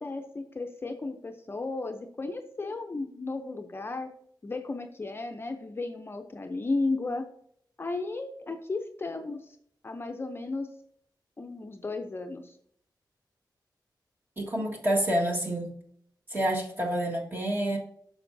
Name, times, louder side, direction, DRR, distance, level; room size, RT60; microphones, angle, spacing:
voice 1, 0.0-4.1 4.4-7.3 7.8-9.4 9.8-10.7 11.4-12.5, left 3 dB, 30° left, 5 dB, 0.5 m, -34 dB
voice 2, 14.4-15.8 16.3-17.8, right 1 dB, 25° right, -1 dB, 1.6 m, -28 dB
8.9 x 6.4 x 2.6 m, 0.66 s
wide cardioid pair, 140°, 8 cm